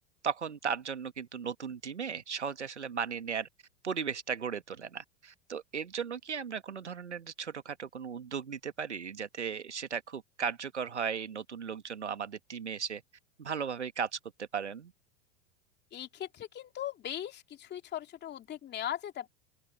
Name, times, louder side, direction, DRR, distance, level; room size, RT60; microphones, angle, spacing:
voice 1, 0.2-3.5 3.8-13.0 13.4-14.9, right 6 dB, 85° right, 1.9 m, -36 dB
voice 2, 15.9-19.3, left 11 dB, 30° left, 2.8 m, -39 dB
open air
hypercardioid pair, 90°, 34 cm